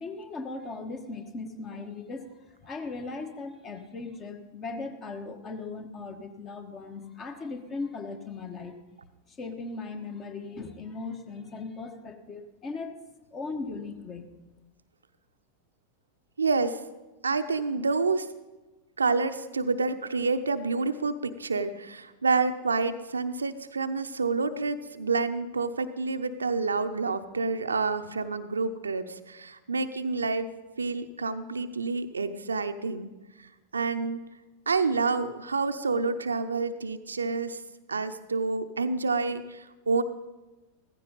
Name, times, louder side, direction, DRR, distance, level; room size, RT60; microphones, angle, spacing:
voice 1, 0.0-8.8 9.3-12.9 13.3-14.3, left 3 dB, 25° left, 7 dB, 1.4 m, -38 dB
voice 2, 16.4-16.8 17.2-18.3 19.0-30.5 30.8-33.1 33.4-34.2 34.7-37.6 37.9-40.0, right 4 dB, 75° right, 9 dB, 0.7 m, -28 dB
15.5 x 15.0 x 4.0 m, 1.1 s
figure-of-eight pair, 90°, 0 cm